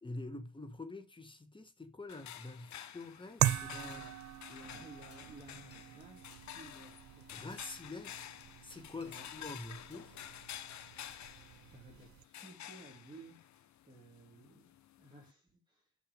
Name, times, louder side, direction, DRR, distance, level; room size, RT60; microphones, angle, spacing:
voice 1, 0.0-4.0 7.3-8.3 8.6-10.2, left 2 dB, 15° left, 1.5 m, -46 dB
sound 1, 2.1-15.3, left 11 dB, 65° left, 0.9 m, -51 dB
sound 2, 2.1-3.3 3.6-3.7 3.9-4.8 5.1-9.6 9.9-10.5 10.8-11.6, left 6 dB, 50° left, 1.6 m, -65 dB
sound 3, 3.4-12.2, right 14 dB, 70° right, 0.5 m, -40 dB
voice 2, 3.8-4.2 4.5-7.3 9.0-9.3 10.9-15.9, right 2 dB, 15° right, 2.9 m, -56 dB
6.6 x 6.2 x 5.3 m
cardioid pair, 90°, 30 cm